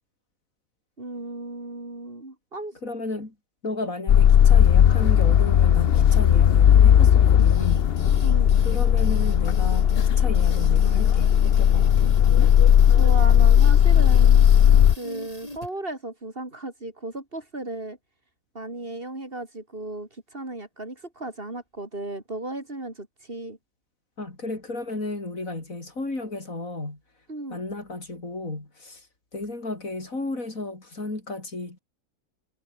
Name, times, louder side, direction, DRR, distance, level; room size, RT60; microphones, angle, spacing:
voice 1, 1.0-2.8 8.2-8.6 13.0-14.4 15.0-18.0 18.5-23.6 27.3-27.6, right 2 dB, 40° right, 4.0 m, -35 dB
voice 2, 2.8-3.3 3.6-7.9 8.6-9.9 10.2-12.1 24.2-27.0 27.5-29.1 29.3-31.8, left 2 dB, 70° left, 5.3 m, -33 dB
sound 1, 4.1-15.0, left 9 dB, 55° left, 0.8 m, -16 dB
sound 2, 7.4-15.7, left 1 dB, 25° left, 5.0 m, -40 dB
omnidirectional pair, 1.5 m